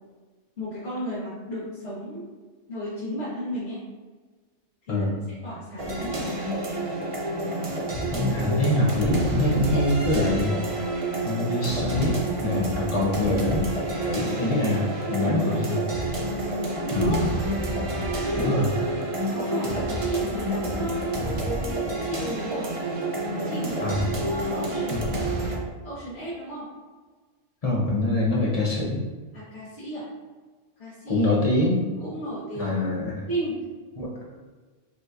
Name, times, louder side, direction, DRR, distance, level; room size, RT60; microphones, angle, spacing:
voice 1, 0.6-2.3 2.7-3.8 4.9-5.1 5.4-6.4 15.2-15.7 16.8-17.2 18.2-18.6 19.3-21.1 21.9-22.7 23.3-25.3 25.8-26.7 29.3-30.1 30.8-31.3 32.0-32.8 33.3-33.6, equal, 65° left, -13 dB, 1.6 m, -34 dB
sound 1, 5.8-25.6, right 1 dB, 40° right, 0.5 m, -28 dB
voice 2, 8.1-10.5 11.2-13.6 14.0-15.8 16.9-17.3 18.4-18.7 23.8-24.0 27.6-29.0 31.1-31.8 32.5-33.2 34.0-34.1, left 1 dB, 35° left, -4 dB, 0.8 m, -24 dB
5.1 x 3.0 x 2.4 m, 1.4 s
omnidirectional pair, 1.2 m